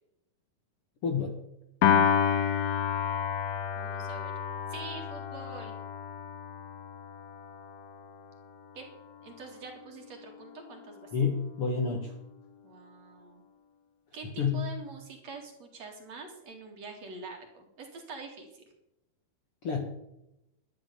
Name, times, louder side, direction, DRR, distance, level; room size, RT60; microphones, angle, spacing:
voice 1, 1.0-1.4 11.1-12.1 14.4-14.7 19.6-19.8, left 5 dB, 50° left, 2 dB, 1.9 m, -29 dB
Piano, 1.8-8.2, left 8 dB, 90° left, 3.3 m, -30 dB
voice 2, 3.8-4.3 4.7-5.7 8.7-8.9 9.2-11.1 12.6-13.4 14.1-18.6, right 4 dB, 50° right, 2 dB, 3.2 m, -45 dB
12.5 x 10.0 x 6.9 m, 0.85 s
omnidirectional pair, 4.3 m